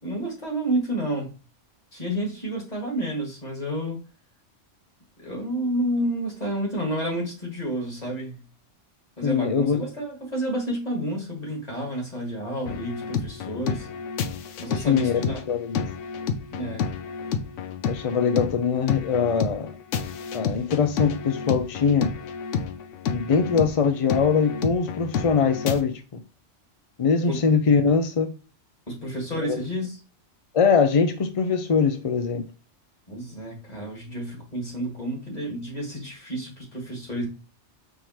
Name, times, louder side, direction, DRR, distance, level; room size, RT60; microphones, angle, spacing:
voice 1, 0.0-1.3 1.9-4.0 5.2-8.4 9.2-13.9 14.6-15.4 16.5-16.9 27.2-27.4 28.9-30.0 33.1-37.3, right 1 dB, 35° left, 2.1 m, -30 dB
voice 2, 9.2-9.8 14.7-15.9 17.8-19.7 20.3-22.1 23.1-26.2 27.0-28.3 29.4-29.6 30.5-32.5, left 6 dB, 55° left, 0.4 m, -22 dB
sound 1, 12.7-25.8, left 6 dB, 85° left, 0.9 m, -30 dB
5.6 x 3.1 x 2.9 m
omnidirectional pair, 1.2 m